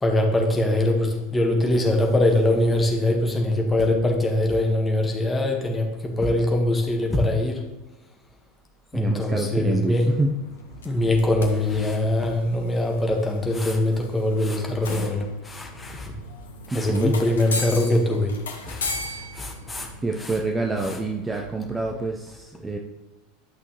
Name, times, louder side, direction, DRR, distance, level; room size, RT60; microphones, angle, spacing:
voice 1, 0.0-7.6 8.9-10.1 10.8-16.1 16.7-18.3 18.6-19.9 20.2-20.3 20.8-21.0, left 1 dB, 15° left, 2 dB, 1.6 m, -23 dB
voice 2, 8.9-10.4 16.7-17.1 20.0-22.8, right 2 dB, 15° right, 2 dB, 0.7 m, -27 dB
sound 1, 9.8-21.8, left 2 dB, 70° left, 1.0 m, -38 dB
11.0 x 6.0 x 3.1 m, 1.1 s
figure-of-eight pair, 80°, 0 cm